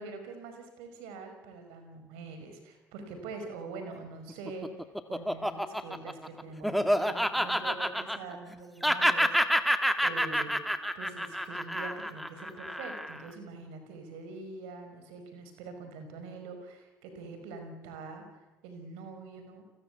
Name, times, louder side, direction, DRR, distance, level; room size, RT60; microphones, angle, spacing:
voice 1, 0.0-9.4 10.0-10.5 10.9-19.6, right 3 dB, 70° right, 7 dB, 5.3 m, -44 dB
Laughter, 4.3-8.5 8.8-13.3, equal, ahead, 2.2 m, -28 dB
30.0 x 21.5 x 8.4 m, 1.1 s
figure-of-eight pair, 50°, 10 cm